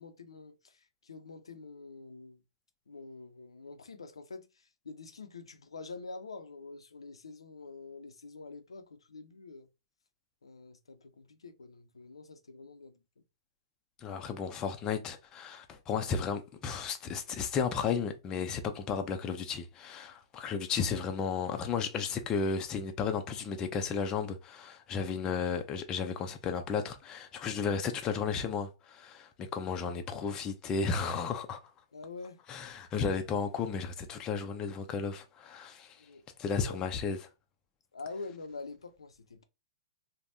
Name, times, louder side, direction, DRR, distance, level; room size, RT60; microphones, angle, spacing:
voice 1, 0.0-2.4 2.9-9.7 10.4-13.0 31.9-32.4 36.0-36.2 36.5-36.8 37.9-39.4, left 3 dB, 90° left, 0.6 m, -46 dB
voice 2, 14.0-31.6 32.5-36.0 36.4-37.2, left 5 dB, 25° left, 0.5 m, -33 dB
3.3 x 2.2 x 2.6 m
hypercardioid pair, 120°, 3 cm